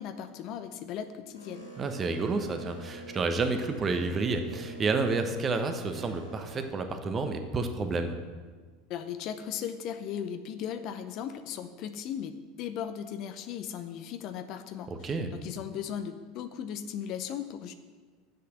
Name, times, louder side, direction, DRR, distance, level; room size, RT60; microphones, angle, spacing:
voice 1, 0.0-1.7 8.9-12.3 12.6-17.7, left 9 dB, 50° left, 9 dB, 0.6 m, -37 dB
Boat Water vehicle, 1.3-6.6, right 2 dB, 85° left, 3.3 m, -45 dB
voice 2, 1.8-8.2 14.9-15.3, right 3 dB, 30° right, 7 dB, 1.1 m, -30 dB
7.9 x 6.7 x 7.6 m, 1.4 s
figure-of-eight pair, 75°, 0 cm